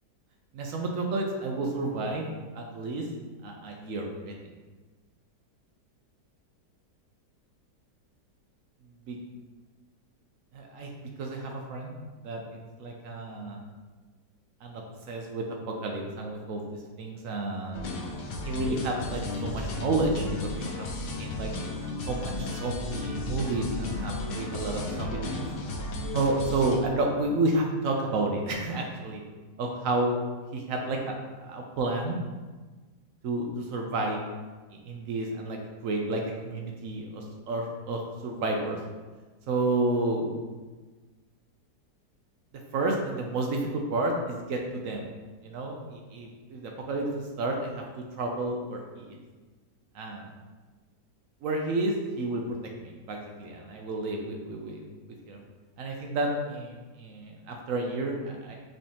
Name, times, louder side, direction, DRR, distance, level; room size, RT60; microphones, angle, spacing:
voice 1, 0.5-2.2 2.6-3.0 3.4-4.3 9.1-9.2 10.5-10.9 11.2-12.0 12.2-12.4 12.8-13.6 14.6-14.8 15.1-16.6 17.0-17.9 18.4-20.9 21.2-21.5 22.0-25.5 26.1-29.2 29.6-30.2 30.5-32.2 33.2-34.2 34.8-35.6 35.8-38.8 39.5-40.3 42.7-45.0 45.4-47.0 47.4-47.8 48.2-49.1 49.9-50.2 51.4-54.8 55.3-55.4 55.8-58.6, right 2 dB, 70° right, 1 dB, 0.8 m, -31 dB
sound 1, 17.7-26.8, left 2 dB, 90° left, 1.2 m, -34 dB
5.5 x 3.3 x 2.8 m, 1.3 s
omnidirectional pair, 1.8 m